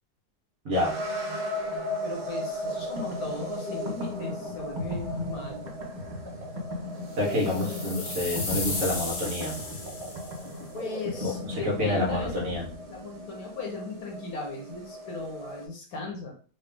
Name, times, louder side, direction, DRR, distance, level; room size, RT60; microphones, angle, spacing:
voice 1, 0.7-1.0 7.2-9.6 11.2-12.7, left 1 dB, 55° right, -2 dB, 1.6 m, -28 dB
sound 1, 0.7-15.7, equal, 75° right, 1.7 m, -38 dB
voice 2, 2.0-5.6 10.7-12.3 12.9-16.3, left 3 dB, 65° left, 1 dB, 1.5 m, -37 dB
sound 2, 2.7-13.2, left 2 dB, 35° right, 0.8 m, -37 dB
sound 3, 7.3-10.5, left 2 dB, 40° left, 0.8 m, -35 dB
4.1 x 2.4 x 3.5 m, 0.41 s
omnidirectional pair, 1.7 m